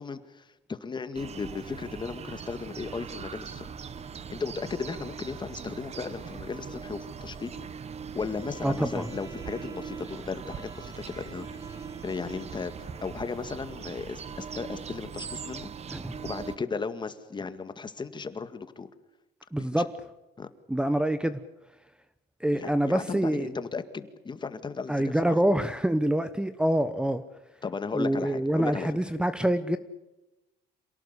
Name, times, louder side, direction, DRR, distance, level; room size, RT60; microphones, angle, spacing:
voice 1, 0.0-3.7 4.3-7.5 8.1-15.7 16.2-18.9 19.6-19.9 20.4-20.5 22.5-25.4 27.6-28.9, left 4 dB, 25° left, 10 dB, 2.0 m, -36 dB
sound 1, 1.1-16.6, right 6 dB, 40° right, 1.3 m, -41 dB
Bowed string instrument, 8.2-13.8, right 5 dB, 20° right, 4.1 m, -49 dB
voice 2, 8.6-9.1 15.9-16.2 19.5-19.9 20.7-21.4 22.4-23.6 24.9-27.2 27.9-29.8, right 1 dB, 5° right, 12 dB, 1.1 m, -26 dB
27.5 x 18.0 x 8.3 m, 0.99 s
cardioid pair, 110°, 17 cm